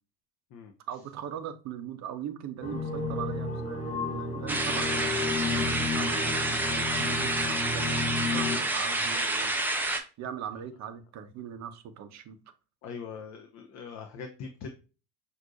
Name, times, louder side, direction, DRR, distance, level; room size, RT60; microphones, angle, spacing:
voice 1, 0.9-9.6 10.2-12.4, right 9 dB, 35° right, 0.7 m, -40 dB
sound 1, 2.6-8.6, left 3 dB, 15° left, 1.4 m, -32 dB
sound 2, 4.5-10.0, right 2 dB, 5° right, 0.5 m, -29 dB
voice 2, 12.8-14.8, left 5 dB, 35° left, 0.7 m, -41 dB
5.9 x 2.7 x 2.6 m
hypercardioid pair, 80°, 49 cm